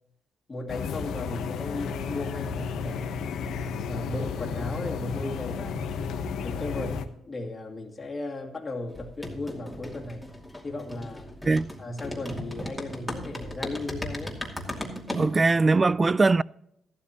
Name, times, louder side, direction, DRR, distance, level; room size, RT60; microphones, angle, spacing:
voice 1, 0.5-3.2 3.9-5.9 6.4-10.3 10.6-11.3 11.8-14.4, left 2 dB, 25° left, 2.4 m, -36 dB
sound 1, 0.7-7.1, left 5 dB, 75° left, 1.0 m, -32 dB
sound 2, 8.9-15.3, left 1 dB, ahead, 2.6 m, -37 dB
voice 2, 15.1-16.4, right 3 dB, 25° right, 0.3 m, -21 dB
14.5 x 12.5 x 3.0 m
cardioid pair, 90°, 0 cm